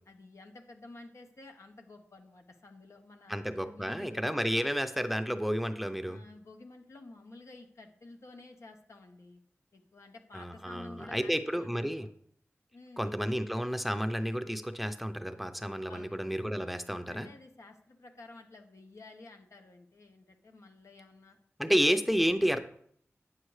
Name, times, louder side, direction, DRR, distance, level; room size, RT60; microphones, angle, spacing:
voice 1, 0.1-4.4 6.1-9.4 9.7-12.1 12.7-13.2 15.9-16.4 17.1-21.4, left 2 dB, 75° left, 4 dB, 1.0 m, -52 dB
voice 2, 3.3-6.2 10.3-12.1 13.0-17.3 21.6-22.6, equal, ahead, 9 dB, 0.6 m, -31 dB
9.0 x 7.6 x 3.2 m, 0.64 s
wide cardioid pair, 55°, 5 cm